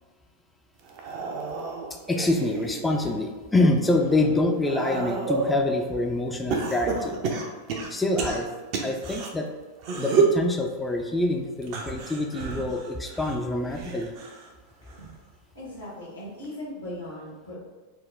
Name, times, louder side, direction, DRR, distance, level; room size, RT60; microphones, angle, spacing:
sound 1, 0.8-3.2 3.7-5.6 6.5-9.3 9.8-10.4 11.6-14.5 14.9-15.3 16.4-16.5, right 4 dB, 45° right, 0.5 m, -30 dB
voice 1, 2.1-7.2 7.9-8.5 8.8-9.5 10.0-14.1, left 2 dB, 10° left, 2 dB, 0.4 m, -26 dB
voice 2, 14.8-15.1 15.5-17.6, left 1 dB, 80° left, -5 dB, 1.2 m, -39 dB
4.1 x 2.1 x 3.4 m, 1.3 s
figure-of-eight pair, 90°, 0 cm